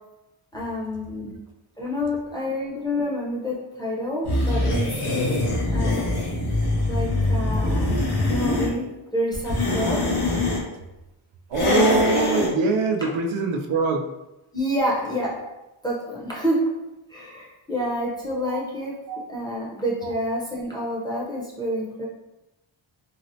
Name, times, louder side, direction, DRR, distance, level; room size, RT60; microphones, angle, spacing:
voice 1, 0.5-1.3 1.8-5.0 5.7-6.1 6.8-7.9 8.3-8.9 9.1-10.0 14.5-15.4 15.8-16.7 17.1-18.9 19.3-22.1, equal, 10° left, -6 dB, 0.6 m, -28 dB
sound 1, 4.2-8.7 9.3-10.6 11.5-12.5, left 2 dB, 85° left, 1.0 m, -23 dB
voice 2, 11.5-14.1 18.5-18.6 19.1-19.2 20.0-20.1, right 4 dB, 75° right, 2 dB, 0.5 m, -24 dB
4.0 x 2.0 x 2.7 m, 0.96 s
wide cardioid pair, 155°, 49 cm